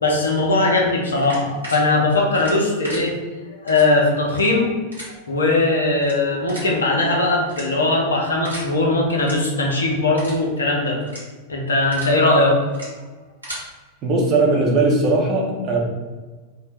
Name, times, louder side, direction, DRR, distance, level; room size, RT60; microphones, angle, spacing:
voice 1, 0.0-3.1 3.6-4.7 5.3-11.0 11.5-12.6, left 2 dB, 70° left, 0 dB, 0.5 m, -19 dB
sound 1, 1.2-1.8 2.3-3.0 3.7-3.8 4.2-4.4 4.9-5.1 5.9-6.1 6.5-6.7 7.4-7.9 8.4-8.6 9.1-9.3 9.7-9.8 10.2-10.4 11.0-11.2 11.7-12.1 12.7-12.9 13.2-13.6, right 1 dB, 85° right, 1.0 m, -35 dB
voice 2, 14.0-15.8, right 2 dB, 35° right, -1 dB, 0.7 m, -18 dB
2.5 x 2.1 x 3.1 m, 1.3 s
figure-of-eight pair, 90°, 0 cm